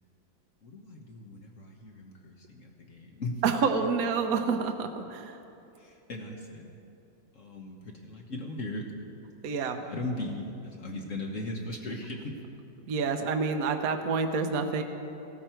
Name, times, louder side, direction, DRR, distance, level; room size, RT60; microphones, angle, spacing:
voice 1, 0.6-3.4 5.7-6.7 7.3-8.9 9.7-12.4, left 2 dB, 50° left, 1 dB, 1.3 m, -38 dB
voice 2, 3.4-5.4 9.4-9.8 12.9-14.8, right 5 dB, 60° right, 5 dB, 1.1 m, -28 dB
16.0 x 13.0 x 4.5 m, 2.8 s
omnidirectional pair, 2.1 m